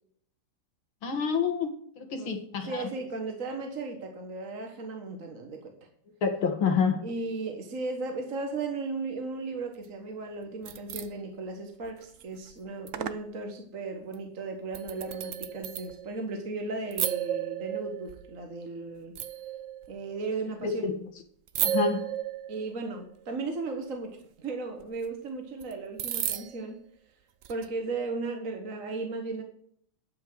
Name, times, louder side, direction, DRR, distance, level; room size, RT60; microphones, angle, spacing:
voice 1, 1.0-2.9 6.2-7.0 20.6-20.9 21.6-22.0, left 6 dB, 85° left, 5 dB, 2.5 m, -28 dB
voice 2, 2.7-5.9 7.0-19.1 19.9-20.9 22.5-26.8 27.5-29.4, right 3 dB, 45° right, 3 dB, 1.8 m, -36 dB
sound 1, 10.4-11.1 11.8-12.2 12.5-12.6 12.9-13.3 14.1-14.2 14.7-16.2 16.9-18.4 19.2-20.2 21.5-22.9 24.8-24.9 25.6-25.7 26.0-26.7 27.4-27.7, right 10 dB, 65° right, 0.8 m, -33 dB
12.5 x 5.8 x 7.8 m, 0.63 s
omnidirectional pair, 2.2 m